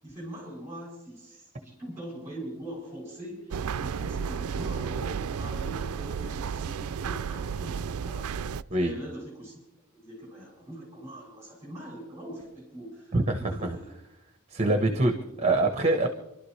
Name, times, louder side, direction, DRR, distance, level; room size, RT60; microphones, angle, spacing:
voice 1, 0.0-8.4 8.7-9.6 9.9-14.0 14.7-15.5, right 1 dB, 10° right, -3 dB, 7.2 m, -42 dB
sound 1, 3.5-8.6, right 6 dB, 80° right, 0.4 m, -32 dB
voice 2, 13.1-13.8 14.5-15.1 15.4-16.1, right 2 dB, 30° right, 5 dB, 1.1 m, -24 dB
29.0 x 12.0 x 3.3 m, 0.91 s
head